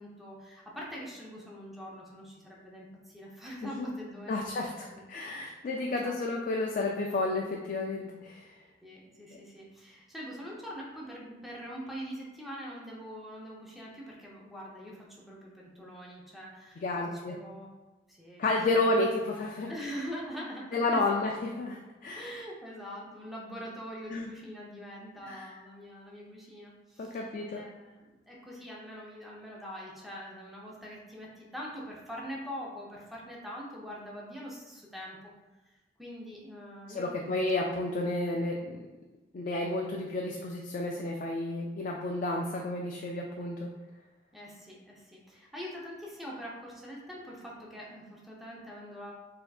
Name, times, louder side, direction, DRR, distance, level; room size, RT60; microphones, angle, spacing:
voice 1, 0.0-4.6 4.8-5.0 5.4-5.5 5.9-6.2 8.8-17.7 18.1-18.4 18.7-18.8 19.7-21.2 22.2-35.3 36.0-37.4 44.3-49.1, equal, ahead, -4 dB, 0.6 m, -43 dB
voice 2, 4.3-8.5 9.3-9.4 16.8-17.3 18.4-19.7 20.7-22.4 24.1-24.3 25.2-25.5 27.0-27.6 36.9-38.8 39.3-43.7, left 2 dB, 50° left, 0 dB, 0.3 m, -31 dB
4.2 x 2.7 x 2.3 m, 1.2 s
head